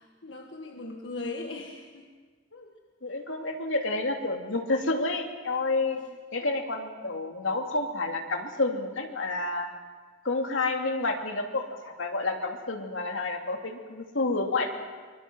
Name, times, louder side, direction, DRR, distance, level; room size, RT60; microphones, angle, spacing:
voice 1, 0.0-2.1 2.5-2.7 3.1-3.2 5.9-6.1, left 2 dB, 70° left, 2 dB, 1.7 m, -39 dB
voice 2, 3.0-6.0 6.3-9.7 10.2-14.8, left 2 dB, 85° left, 3 dB, 2.7 m, -29 dB
24.5 x 23.5 x 6.2 m, 1.5 s
head